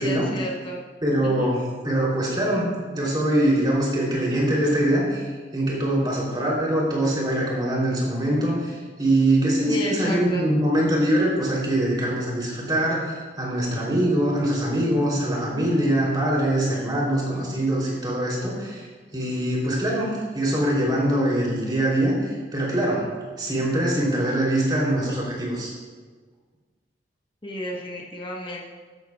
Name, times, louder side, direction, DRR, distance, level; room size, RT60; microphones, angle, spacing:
voice 1, 0.0-0.8 1.2-1.6 9.7-10.5 27.4-28.7, left 1 dB, 30° left, -2 dB, 1.3 m, -32 dB
voice 2, 1.0-13.0 13.4-18.9 19.1-23.1 23.4-25.7, right 1 dB, 25° right, -4 dB, 3.2 m, -23 dB
13.0 x 11.5 x 2.4 m, 1.4 s
head